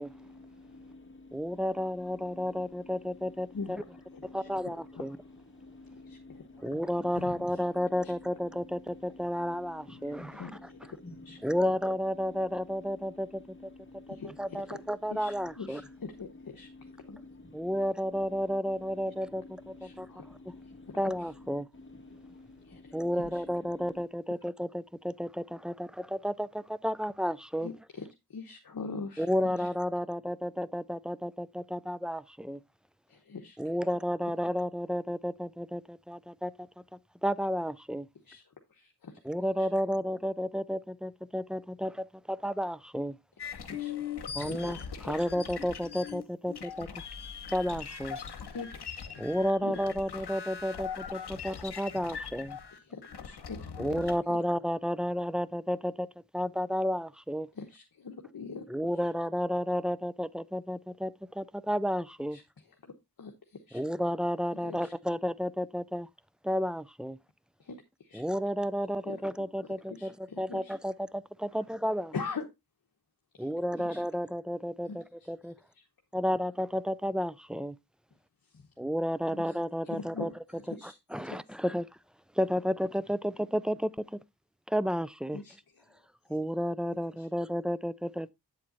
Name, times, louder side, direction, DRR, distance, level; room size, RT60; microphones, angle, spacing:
voice 1, 0.0-24.1, left 2 dB, 30° left, 1.9 m, -51 dB
voice 2, 1.3-3.8 4.3-5.2 6.6-10.2 11.4-13.4 14.4-15.8 17.5-20.1 21.0-21.7 22.9-27.7 29.2-32.6 33.6-36.5 37.2-38.1 39.2-43.1 44.3-44.8 45.0-46.9 47.5-48.2 49.2-52.6 53.8-56.1 56.3-57.5 58.7-62.4 63.7-66.1 66.4-67.2 68.1-72.1 73.4-75.5 76.1-77.8 78.8-80.3 81.1-81.9 82.4-84.2 84.7-85.4 86.3-88.3, equal, ahead, 0.3 m, -32 dB
voice 3, 6.0-6.7 7.1-7.3 8.0-8.1 10.4-10.5 11.3-11.4 14.1-14.6 15.1-16.3 16.5-16.7 17.1-17.2 19.8-20.2 22.7-22.8 23.3-23.4 27.6-29.7 33.1-33.6 38.3-38.4 38.7-39.1 43.6-43.9 44.4-44.6 45.0-45.1 48.5-49.2 49.6-49.7 50.1-50.2 52.7-54.1 57.5-58.7 62.3-62.4 62.8-62.9 63.2-63.8 64.6-64.9 67.6-68.2 69.1-69.2 69.9-70.7 72.1-72.5 73.3-73.5 73.8-74.0 74.8-75.3 75.7-75.8 78.5-78.7 79.3-79.4 79.9-81.4 85.3-85.6 87.2-87.3, left 4 dB, 60° left, 1.1 m, -42 dB
sound 1, 43.4-54.2, left 7 dB, 85° left, 1.0 m, -41 dB
8.6 x 7.6 x 2.6 m
wide cardioid pair, 75°, 38 cm